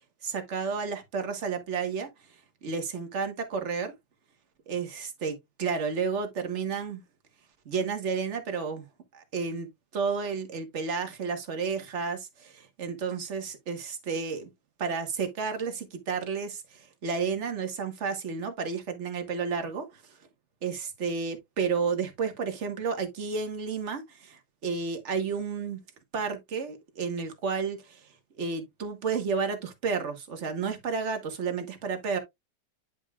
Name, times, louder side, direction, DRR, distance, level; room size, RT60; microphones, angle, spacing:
voice 1, 0.2-2.1 2.6-3.9 4.7-7.0 7.6-8.9 9.1-14.5 14.8-20.2 20.6-25.8 26.1-28.1 28.4-32.2, right 5 dB, 45° right, 1.6 m, -31 dB
10.0 x 5.3 x 2.4 m
omnidirectional pair, 1.9 m